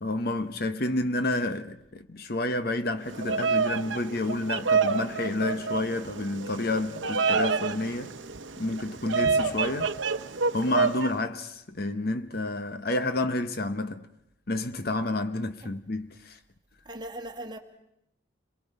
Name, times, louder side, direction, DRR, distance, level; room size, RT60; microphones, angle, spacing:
voice 1, 0.0-8.1 8.6-9.9 10.5-14.1 14.5-16.4, left 2 dB, 50° left, 1.0 m, -30 dB
Bird vocalization bird call bird song, 3.1-11.1, right 5 dB, 75° right, 0.9 m, -28 dB
voice 2, 16.9-17.6, right 1 dB, 25° right, 2.0 m, -39 dB
29.0 x 22.5 x 5.4 m
head